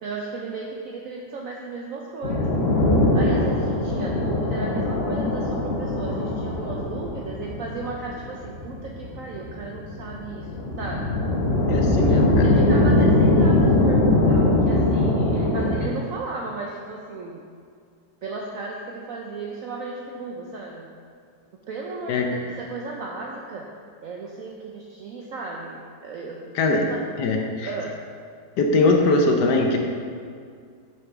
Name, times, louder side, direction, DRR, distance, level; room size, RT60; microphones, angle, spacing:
voice 1, 0.0-2.5 3.1-11.1 11.9-17.4 18.2-20.9 21.7-23.7 24.0-27.1 27.7-27.9, right 3 dB, 70° right, -1 dB, 0.7 m, -35 dB
sound 1, 2.2-15.8, left 2 dB, 50° left, 0.8 m, -21 dB
voice 2, 11.7-12.5 22.1-22.2 26.5-26.8 27.2-27.7 28.6-29.8, left 3 dB, 70° left, 2 dB, 1.2 m, -21 dB
6.3 x 5.9 x 3.6 m, 2.2 s
omnidirectional pair, 2.0 m